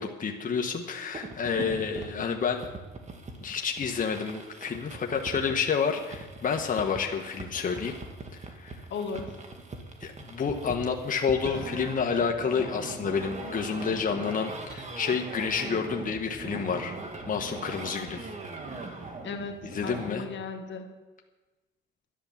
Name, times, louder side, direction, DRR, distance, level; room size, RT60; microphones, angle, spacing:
voice 1, 0.0-2.7 3.4-8.0 8.5-8.8 10.0-17.0 17.3-18.3 18.7-18.9 19.7-20.2, left 6 dB, 45° left, 2 dB, 1.4 m, -29 dB
sound 1, 1.1-20.1, right 3 dB, 35° right, 1.9 m, -41 dB
voice 2, 8.9-9.4 19.2-20.9, left 4 dB, 65° left, 5 dB, 1.6 m, -36 dB
11.0 x 10.5 x 7.3 m, 1.2 s
cardioid pair, 90°, 20 cm